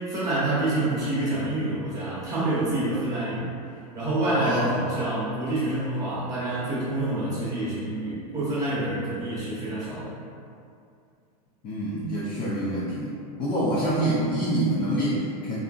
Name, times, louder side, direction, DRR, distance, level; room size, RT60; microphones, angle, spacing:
voice 1, 0.0-3.5 3.9-10.2 12.5-12.8, right 1 dB, 15° right, -9 dB, 0.7 m, -27 dB
voice 2, 4.4-4.8 11.6-13.1 13.4-15.6, right 1 dB, 25° left, -8 dB, 0.4 m, -26 dB
2.7 x 2.5 x 2.4 m, 2.4 s
supercardioid pair, 150°, 20 cm